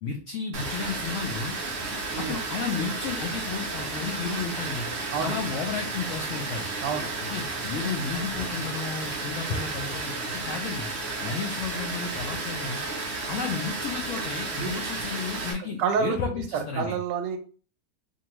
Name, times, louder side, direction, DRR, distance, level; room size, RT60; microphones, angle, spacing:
voice 1, 0.0-1.6 2.1-4.8 5.2-6.7 7.2-10.9 11.2-12.8 13.3-17.0, left 5 dB, 80° left, 2 dB, 0.6 m, -32 dB
Water, 0.5-15.5, right 3 dB, 70° right, 0.6 m, -33 dB
voice 2, 6.8-7.1 14.5-14.7 15.6-16.2 16.8-17.4, right 6 dB, 85° right, 7 dB, 1.2 m, -28 dB
2.7 x 2.5 x 2.9 m, 0.39 s
omnidirectional pair, 1.8 m